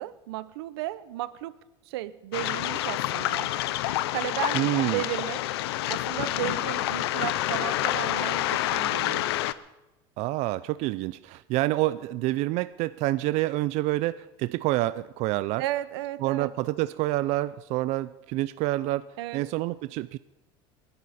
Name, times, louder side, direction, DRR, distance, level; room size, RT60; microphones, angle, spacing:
voice 1, 0.0-1.6 1.9-3.5 4.1-5.4 5.9-9.3 15.6-16.5 19.2-19.4, right 15 dB, 85° right, 16 dB, 0.8 m, -34 dB
Waves surf, 2.3-9.5, left 15 dB, 90° left, 0.7 m, -28 dB
voice 2, 4.5-5.0 10.2-15.6 16.2-20.2, right 17 dB, 60° right, 14 dB, 0.5 m, -27 dB
28.0 x 11.0 x 4.2 m, 1.0 s
supercardioid pair, 110°, 13 cm